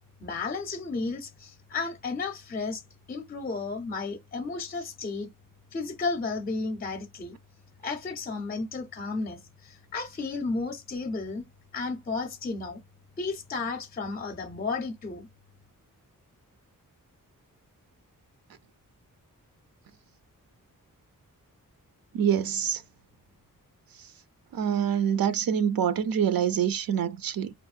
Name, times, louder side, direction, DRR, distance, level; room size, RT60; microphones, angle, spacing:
voice 1, 0.2-2.8 3.1-5.3 5.7-7.4 7.8-11.5 11.7-12.8 13.2-15.3, left 3 dB, 25° left, 0.5 m, -33 dB
voice 2, 22.1-22.8 24.5-27.5, right 8 dB, 80° right, 0.5 m, -26 dB
4.5 x 2.0 x 2.4 m
wide cardioid pair, 170°, 34 cm